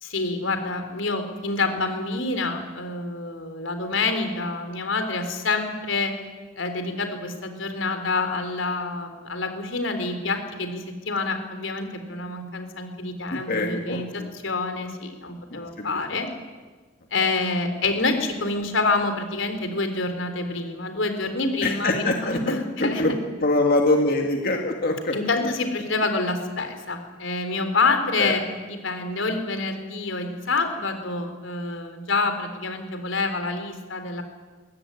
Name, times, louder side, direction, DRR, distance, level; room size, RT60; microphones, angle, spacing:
voice 1, 0.0-6.1 6.6-16.3 17.1-23.2 25.1-34.2, left 3 dB, 90° left, 7 dB, 3.9 m, -27 dB
voice 2, 13.3-14.3 15.5-16.0 21.6-23.1 23.4-25.2 28.2-28.4, left 2 dB, 50° left, 2 dB, 2.1 m, -24 dB
22.5 x 18.0 x 9.8 m, 1.4 s
head